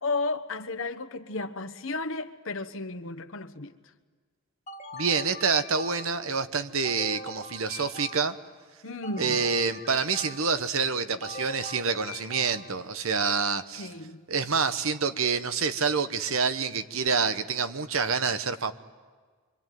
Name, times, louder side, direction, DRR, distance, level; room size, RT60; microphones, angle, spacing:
voice 1, 0.0-3.7 8.8-9.4 13.8-14.2, left 3 dB, 65° left, 1.2 m, -33 dB
sound 1, 4.7-6.3 6.8-8.5 9.0-10.7 11.2-12.9, left 1 dB, 30° left, 1.5 m, -42 dB
voice 2, 4.9-8.3 9.2-13.9 14.3-18.7, right 5 dB, 70° right, 1.1 m, -27 dB
25.0 x 24.5 x 9.3 m
head